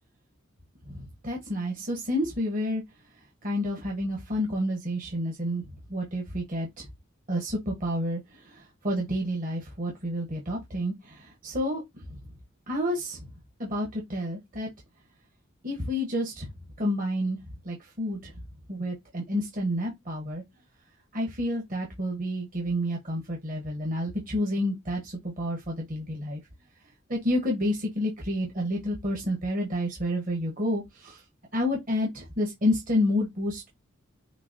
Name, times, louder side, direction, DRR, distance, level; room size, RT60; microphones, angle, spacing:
voice 1, 0.9-2.8 3.4-5.6 5.9-6.9 7.3-8.2 8.5-11.8 12.7-13.3 13.6-14.7 15.6-16.4 16.8-17.4 17.6-18.3 18.7-20.4 21.1-26.4 27.1-31.2 31.5-33.7, left 1 dB, 45° right, 1.2 m, -29 dB
6.7 x 2.9 x 2.8 m
head